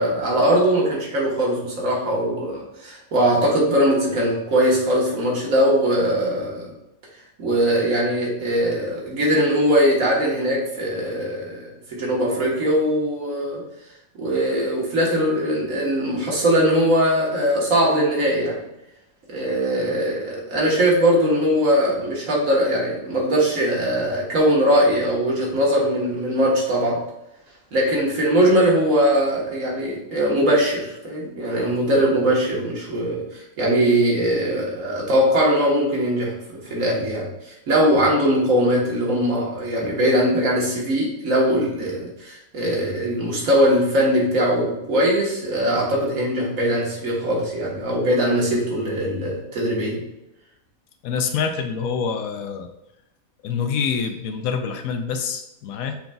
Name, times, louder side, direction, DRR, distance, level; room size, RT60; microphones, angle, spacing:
voice 1, 0.0-6.7 7.4-13.6 14.2-18.6 19.3-27.0 27.7-50.0, equal, 70° right, -3 dB, 1.6 m, -21 dB
voice 2, 51.0-52.7 53.4-56.0, left 6 dB, 80° left, 7 dB, 1.0 m, -26 dB
5.8 x 3.9 x 2.3 m, 0.88 s
omnidirectional pair, 1.5 m